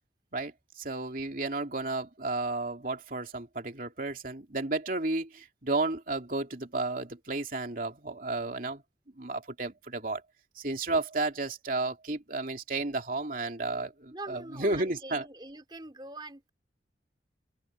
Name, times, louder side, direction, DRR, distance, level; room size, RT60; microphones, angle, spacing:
voice 1, 0.3-8.8 9.2-10.2 10.6-15.3, right 2 dB, 50° right, 2.9 m, -32 dB
voice 2, 14.1-16.5, right 2 dB, 25° right, 3.9 m, -44 dB
open air
head